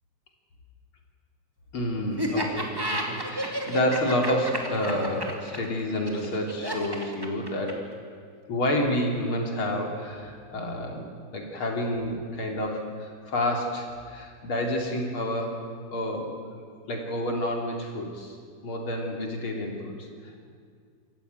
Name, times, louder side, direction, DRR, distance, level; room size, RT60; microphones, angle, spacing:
voice 1, 1.7-7.9 8.5-11.0 11.3-15.6 15.9-16.3 16.9-18.3 18.6-20.1, left 1 dB, 35° left, 1 dB, 3.1 m, -29 dB
Laughter, 2.2-7.9, equal, 10° right, 1.3 m, -31 dB
26.5 x 14.5 x 9.3 m, 2.1 s
omnidirectional pair, 4.6 m